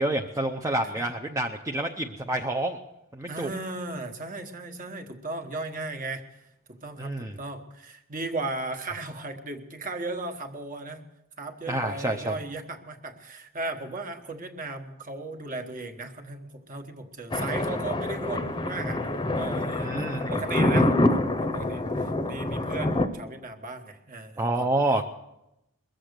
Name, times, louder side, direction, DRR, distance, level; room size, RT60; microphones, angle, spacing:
voice 1, 0.0-2.8 3.1-3.5 7.0-7.4 11.7-12.4 19.8-20.4 24.4-25.0, right 1 dB, 15° right, 2 dB, 0.6 m, -28 dB
voice 2, 3.3-6.2 6.7-11.0 11.4-19.0 19.3-24.7, right 2 dB, 40° right, 6 dB, 1.3 m, -36 dB
Thunder, 17.3-23.1, left 1 dB, 20° left, 0.9 m, -26 dB
21.5 x 7.6 x 6.6 m, 0.89 s
head